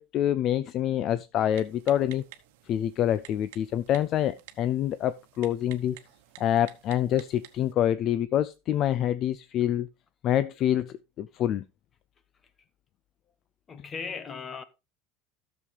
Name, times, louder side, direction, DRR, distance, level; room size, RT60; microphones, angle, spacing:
voice 1, 0.0-2.2 2.7-6.0 6.4-9.9 10.2-11.6, left 11 dB, 45° left, 0.4 m, -26 dB
Typing, 1.5-7.7, right 14 dB, 80° right, 1.0 m, -52 dB
voice 2, 13.7-14.6, left 5 dB, 25° left, 1.1 m, -37 dB
12.5 x 6.9 x 3.3 m
supercardioid pair, 140°, 0 cm